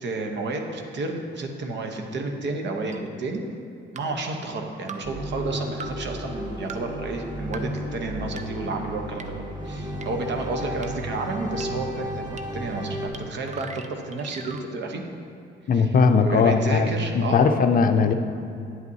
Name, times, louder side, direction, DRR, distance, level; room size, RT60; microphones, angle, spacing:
voice 1, 0.0-3.4 3.9-15.0 15.7-15.9 16.2-17.6, right 3 dB, 65° right, 3 dB, 0.9 m, -31 dB
sound 1, 2.9-3.0 4.0-4.1 4.9-5.0 5.8-5.9 6.7-6.8 7.5-7.6 8.4-8.5 9.2-9.3 10.0-10.1 10.8-10.9 11.6-11.7 12.4-12.5 13.1-13.2 13.5-14.7, right 5 dB, 35° right, 0.5 m, -38 dB
sound 2, 5.0-13.1, equal, 20° right, 1.3 m, -33 dB
voice 2, 15.7-18.1, left 5 dB, 45° left, 7 dB, 0.5 m, -19 dB
9.6 x 8.1 x 2.7 m, 2.6 s
cardioid pair, 90°, 20 cm